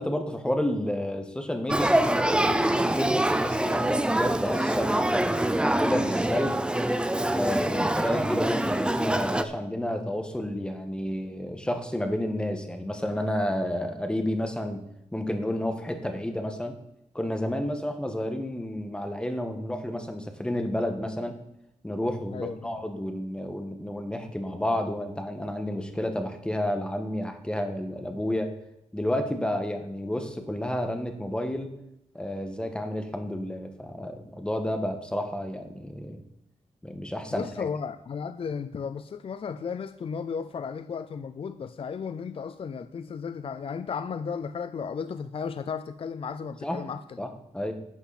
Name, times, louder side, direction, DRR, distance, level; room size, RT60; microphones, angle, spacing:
voice 1, 0.0-6.5 7.3-14.8 15.1-16.7 17.1-21.3 21.8-28.5 28.9-31.7 32.1-36.2 36.8-37.7 46.6-46.8 47.2-47.3 47.5-47.7, left 1 dB, 5° left, 6 dB, 1.5 m, -30 dB
Male speech man speaking / Child speech kid speaking / Conversation, 1.7-9.4, right 1 dB, 10° right, 0.6 m, -25 dB
voice 2, 37.3-47.2, left 6 dB, 50° left, 11 dB, 0.4 m, -34 dB
11.5 x 8.0 x 4.2 m, 0.81 s
wide cardioid pair, 110°, 12 cm